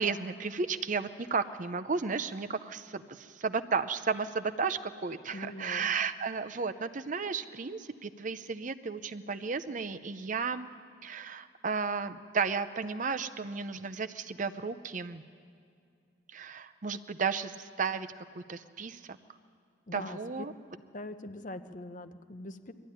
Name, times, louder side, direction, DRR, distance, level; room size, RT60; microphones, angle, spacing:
voice 1, 0.0-10.7 11.0-15.2 16.3-18.1 18.5-19.2 19.9-20.5, right 5 dB, 40° right, 10 dB, 0.6 m, -33 dB
voice 2, 5.3-5.9 19.9-20.5 20.9-22.7, left 1 dB, 40° left, 9 dB, 0.8 m, -42 dB
21.5 x 13.5 x 10.0 m, 2.4 s
head